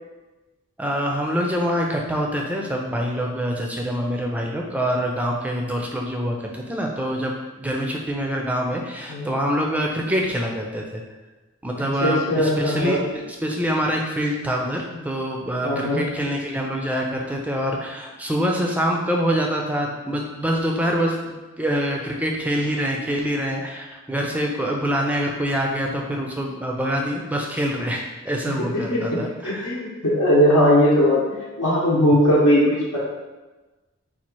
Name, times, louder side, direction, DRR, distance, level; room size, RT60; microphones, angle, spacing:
voice 1, 0.8-11.0 11.6-29.7, equal, 5° right, 0 dB, 0.4 m, -25 dB
voice 2, 11.8-13.0 15.6-16.0 28.7-29.0 29.4-33.0, equal, 80° left, -8 dB, 0.9 m, -19 dB
4.1 x 2.4 x 4.4 m, 1.2 s
head